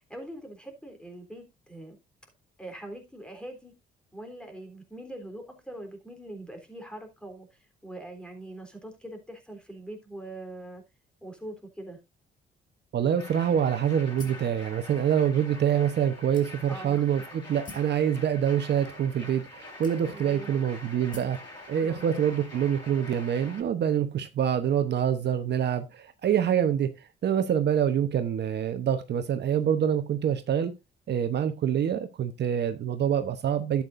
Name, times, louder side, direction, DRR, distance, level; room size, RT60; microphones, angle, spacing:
voice 1, 0.1-2.0 2.6-3.7 4.1-10.8 11.2-12.0 16.7-17.1 20.0-20.5 21.8-22.1, right 1 dB, 5° left, 3.5 m, -42 dB
voice 2, 12.9-26.9 27.2-30.7 31.1-33.8, right 9 dB, 60° right, 1.0 m, -26 dB
sound 1, 13.2-23.6, left 2 dB, 20° left, 5.4 m, -45 dB
sound 2, 14.2-14.5 15.3-15.4 16.3-16.9 17.6-18.0 18.9-19.0 19.8-20.4 21.1-21.4, left 3 dB, 45° left, 2.7 m, -46 dB
11.5 x 8.6 x 2.6 m
cardioid pair, 90°, 20 cm